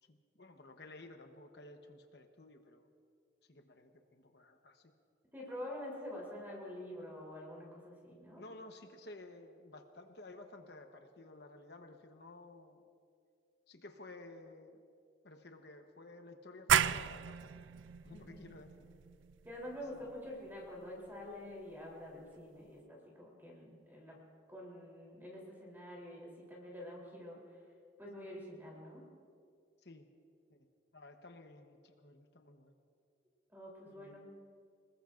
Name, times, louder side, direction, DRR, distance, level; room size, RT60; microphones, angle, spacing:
voice 1, 0.0-2.9 3.5-4.9 8.4-12.8 13.7-14.8 15.2-17.7 18.0-18.7 19.9-20.0 29.8-30.1 30.5-30.7 30.9-32.7 33.9-34.2, left 2 dB, 60° left, 5 dB, 1.0 m, -54 dB
voice 2, 5.3-8.4 18.1-18.4 19.4-24.2 24.5-27.6 28.0-29.0 33.5-34.2, left 1 dB, 10° right, -3 dB, 3.4 m, -47 dB
sound 1, 16.7-22.1, right 9 dB, 75° right, 0.4 m, -36 dB
26.0 x 20.5 x 2.6 m, 2.3 s
head